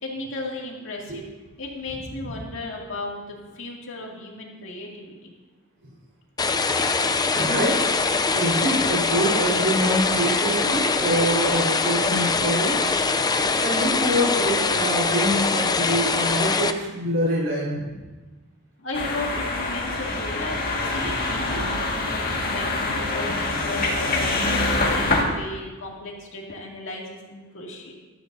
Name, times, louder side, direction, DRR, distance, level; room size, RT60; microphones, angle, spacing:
voice 1, 0.0-1.2 1.6-5.3 18.8-27.9, left 2 dB, 65° left, -2 dB, 2.4 m, -35 dB
sound 1, 6.4-16.7, left 4 dB, 20° left, 0.5 m, -23 dB
voice 2, 7.3-7.7 8.3-12.8 13.6-18.0 21.5-21.7, right 1 dB, 60° right, -6 dB, 4.5 m, -25 dB
sound 2, 18.9-25.2, left 2 dB, 45° left, 1.9 m, -25 dB
14.5 x 13.5 x 2.7 m, 1.2 s
head